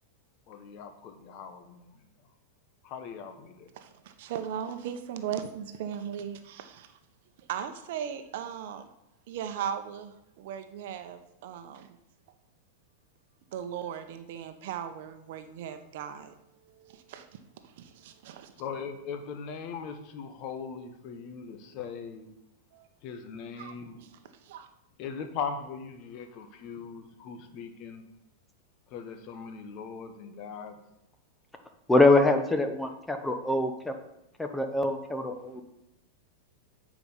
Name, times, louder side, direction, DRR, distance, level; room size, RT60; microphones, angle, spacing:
voice 1, 0.5-1.9 2.8-3.7 18.5-22.3 23.0-24.0 25.0-28.0 28.9-30.8 35.5-35.6, left 6 dB, 45° left, 8 dB, 1.1 m, -40 dB
voice 2, 3.8-6.9 7.4-8.9 9.3-12.0 13.5-16.3 16.6-18.5 22.7-22.9 23.6-24.7, right 9 dB, 65° right, 8 dB, 0.8 m, -38 dB
voice 3, 31.9-33.9 34.4-35.6, left 2 dB, 5° left, 6 dB, 0.9 m, -24 dB
9.0 x 4.9 x 5.5 m, 0.86 s
hypercardioid pair, 130°, 0 cm